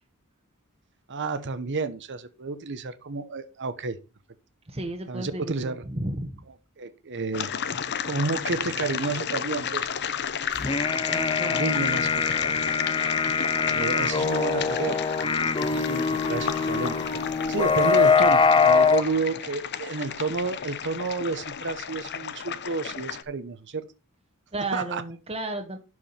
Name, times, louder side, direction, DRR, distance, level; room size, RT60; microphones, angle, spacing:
voice 1, 1.1-4.0 5.1-5.8 6.8-7.5 8.0-9.9 11.5-12.3 13.6-17.0 17.5-23.8 24.7-25.0, right 3 dB, 55° right, 1.0 m, -31 dB
voice 2, 4.7-6.3 11.1-11.7 12.4-12.6 24.5-25.8, right 2 dB, 30° right, 1.3 m, -33 dB
sound 1, 7.3-23.2, left 8 dB, 50° left, 0.8 m, -33 dB
sound 2, 10.6-19.0, left 5 dB, 25° left, 0.6 m, -23 dB
12.0 x 5.0 x 5.7 m
head